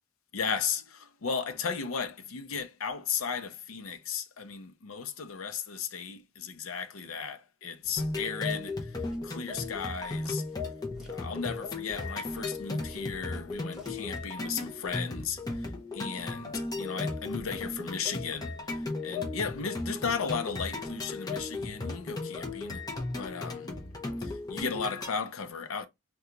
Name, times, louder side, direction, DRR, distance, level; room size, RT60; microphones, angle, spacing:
voice 1, 0.3-9.0 9.2-10.4 11.1-22.9 23.1-23.7 24.2-25.9, left 6 dB, 65° left, 0.5 m, -35 dB
Walk footsteps, 7.8-14.8, equal, 5° right, 1.2 m, -56 dB
sound 1, 8.0-25.1, left 2 dB, 15° left, 0.6 m, -36 dB
2.8 x 2.3 x 3.7 m
head